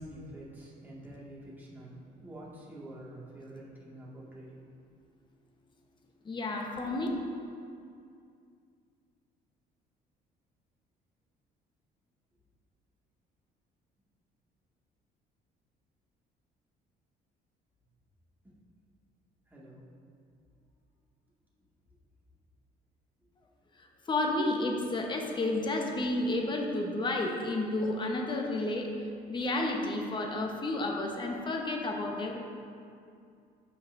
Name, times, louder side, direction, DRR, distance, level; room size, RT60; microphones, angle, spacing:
voice 1, 0.0-4.7 18.4-18.5 19.5-19.9 20.5-20.6, right 1 dB, 10° right, -6 dB, 2.0 m, -47 dB
voice 2, 6.2-7.1 23.8-28.9 29.3-32.4, left 2 dB, 30° left, 1 dB, 1.1 m, -31 dB
14.0 x 5.7 x 2.7 m, 2.4 s
cardioid pair, 110°, 17 cm